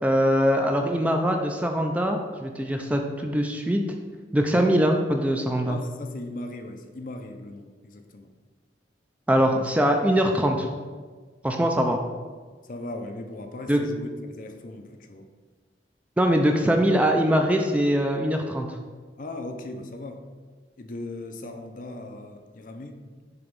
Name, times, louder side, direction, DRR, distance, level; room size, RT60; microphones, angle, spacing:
voice 1, 0.0-3.8 4.3-5.8 9.3-10.7 11.4-12.0 13.7-13.8 16.2-18.7, equal, 10° right, 3 dB, 0.3 m, -22 dB
voice 2, 5.6-8.3 12.7-15.3 19.2-20.2 20.8-23.0, left 2 dB, 45° left, 5 dB, 0.5 m, -38 dB
6.7 x 3.0 x 5.3 m, 1.5 s
head